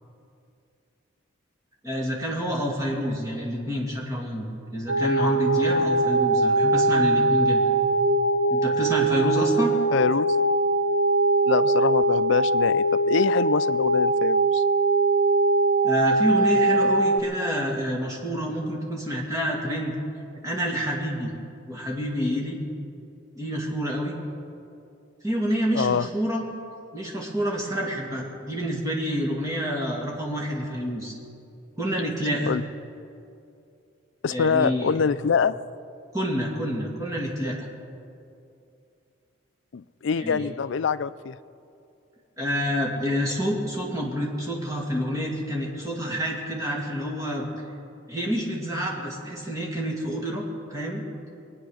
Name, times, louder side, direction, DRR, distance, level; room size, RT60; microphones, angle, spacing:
voice 1, 1.8-7.6 8.5-9.7 15.8-20.0 20.4-21.3 21.7-22.6 23.4-24.2 25.2-26.4 26.9-31.1 31.8-32.5 34.3-34.9 36.1-37.7 40.2-40.5 42.4-47.5 48.1-51.0, equal, 15° right, -3 dB, 2.3 m, -28 dB
sound 1, 4.9-17.2, right 2 dB, 65° right, 0.8 m, -21 dB
voice 2, 9.9-10.4 11.5-14.6 25.7-26.1 32.5-32.6 34.2-35.6 39.7-41.4, left 6 dB, 65° left, 15 dB, 0.4 m, -25 dB
22.5 x 9.4 x 6.4 m, 2.6 s
head